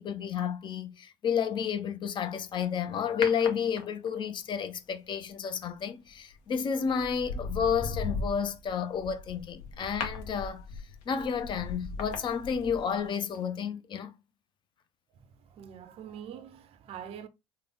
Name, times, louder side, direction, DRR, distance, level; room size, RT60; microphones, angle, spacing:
voice 1, 0.0-10.7 11.1-14.1, left 7 dB, 35° left, 0.6 m, -31 dB
sound 1, 3.2-4.2 6.1-6.4 6.9-13.1 13.3-13.4, left 4 dB, 60° left, 0.8 m, -38 dB
voice 2, 15.1-17.3, right 9 dB, 45° right, 0.5 m, -45 dB
3.3 x 2.2 x 3.6 m
hypercardioid pair, 70°, 14 cm